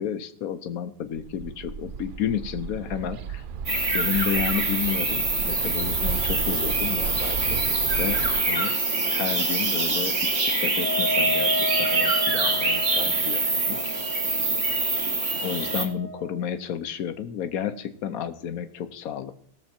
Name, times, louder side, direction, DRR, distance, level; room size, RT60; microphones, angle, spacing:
voice 1, 0.0-3.4 3.9-7.7 8.0-8.7 9.0-13.9 15.4-19.4, left 9 dB, 75° left, 12 dB, 1.2 m, -31 dB
Bird, 1.1-8.4, right 6 dB, 65° right, 0.5 m, -34 dB
sound 1, 3.7-15.9, right 3 dB, 45° right, 1.8 m, -25 dB
Wind instrument woodwind instrument, 10.7-16.4, equal, 20° left, 0.4 m, -33 dB
17.0 x 6.9 x 4.3 m, 0.62 s
omnidirectional pair, 1.5 m